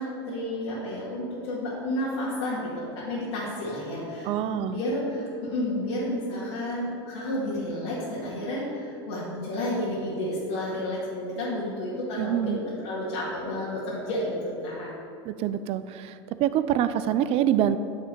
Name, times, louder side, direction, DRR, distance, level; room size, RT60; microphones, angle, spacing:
voice 1, 0.0-14.9, left 1 dB, 80° left, -8 dB, 2.1 m, -31 dB
voice 2, 4.2-4.8 12.2-12.6 15.2-16.1 16.4-17.8, right 10 dB, 50° right, 12 dB, 0.5 m, -25 dB
9.8 x 3.5 x 6.8 m, 2.5 s
supercardioid pair, 105°, 13 cm